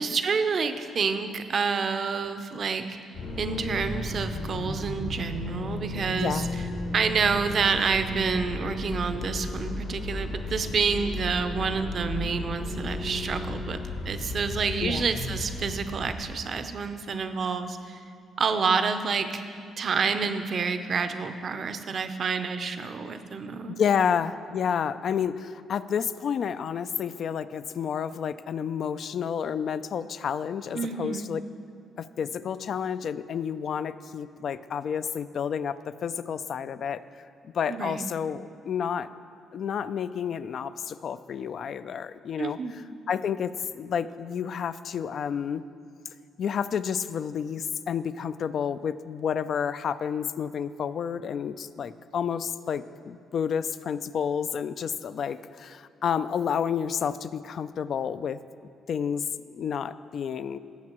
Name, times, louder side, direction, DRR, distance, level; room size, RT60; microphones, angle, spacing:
voice 1, 0.0-2.9 3.4-6.5 6.9-18.0 18.4-19.4 19.8-23.8 30.7-31.3 37.7-38.0 42.4-42.8, right 5 dB, 50° right, 9 dB, 0.6 m, -28 dB
sound 1, 3.1-16.6, left 2 dB, 80° left, 2.1 m, -34 dB
voice 2, 6.1-6.5 14.8-15.0 23.7-31.4 32.0-37.0 37.5-39.1 39.5-42.6 43.1-45.6 46.4-58.4 58.9-59.3 59.5-60.6, left 7 dB, 60° left, 13 dB, 0.3 m, -30 dB
18.0 x 7.4 x 3.0 m, 2.3 s
cardioid pair, 90°, 0 cm